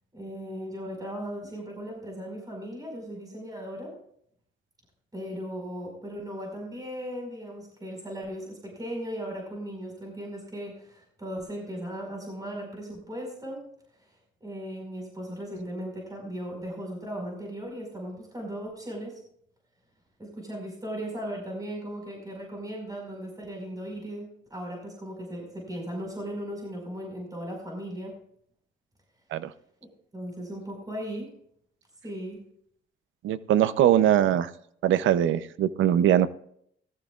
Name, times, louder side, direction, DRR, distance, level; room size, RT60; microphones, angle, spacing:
voice 1, 0.1-3.9 5.1-13.6 14.4-19.2 20.2-28.1 30.1-31.3 32.0-32.4, equal, 20° right, 0 dB, 5.1 m, -37 dB
voice 2, 33.2-34.5 34.8-36.3, right 11 dB, 75° right, 15 dB, 0.7 m, -21 dB
18.0 x 14.0 x 2.4 m, 0.68 s
cardioid pair, 90°, 20 cm